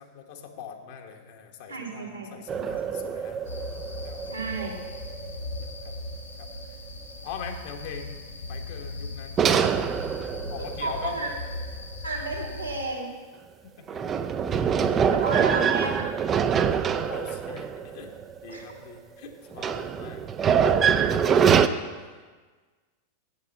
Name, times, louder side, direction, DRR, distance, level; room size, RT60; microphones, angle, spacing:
voice 1, 0.0-3.7 4.0-4.4 5.4-5.9 6.4-6.8 7.2-8.1 8.5-9.4 9.7-10.0 10.5-11.3 13.8-15.2 15.5-15.7 17.1-18.1 18.4-21.7 22.0-22.1, left 7 dB, 50° left, 4 dB, 1.3 m, -42 dB
voice 2, 1.7-2.7 4.3-4.8 10.8-11.3 12.0-13.1 15.1-16.2 18.5-18.6, right 3 dB, 80° right, -3 dB, 2.4 m, -32 dB
sound 1, 2.5-6.0 6.5-6.6 9.4-11.7 13.9-18.7 19.5-21.7, right 7 dB, 25° right, 0.5 m, -25 dB
sound 2, 3.4-12.8, left 2 dB, 80° left, 2.4 m, -38 dB
8.4 x 8.2 x 7.3 m, 1.4 s
figure-of-eight pair, 90°, 0 cm